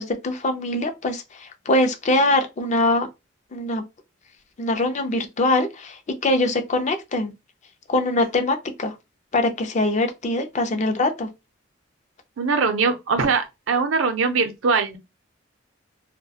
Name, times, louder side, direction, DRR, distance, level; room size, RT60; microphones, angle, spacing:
voice 1, 0.0-3.1 3.5-3.8 4.6-7.3 7.9-8.9 9.3-11.3, left 2 dB, 35° left, 0.4 m, -23 dB
voice 2, 12.4-15.0, right 4 dB, 75° right, 0.5 m, -21 dB
2.3 x 2.1 x 2.7 m
head